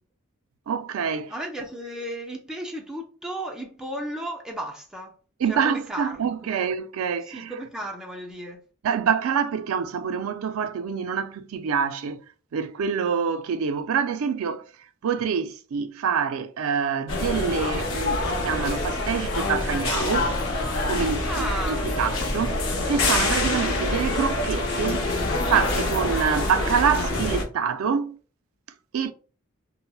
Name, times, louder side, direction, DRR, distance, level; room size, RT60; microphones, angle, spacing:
voice 1, 0.7-1.3 5.4-7.5 8.8-12.2 12.5-14.7 15.0-20.3 20.9-25.1 25.4-28.2 28.9-29.1, right 6 dB, 80° right, 0.4 m, -26 dB
voice 2, 1.3-5.1 5.5-6.6 7.2-8.6 21.3-21.9, right 1 dB, 5° right, 0.4 m, -34 dB
sound 1, 17.1-27.4, left 2 dB, 70° left, 0.8 m, -26 dB
3.8 x 2.0 x 2.2 m
head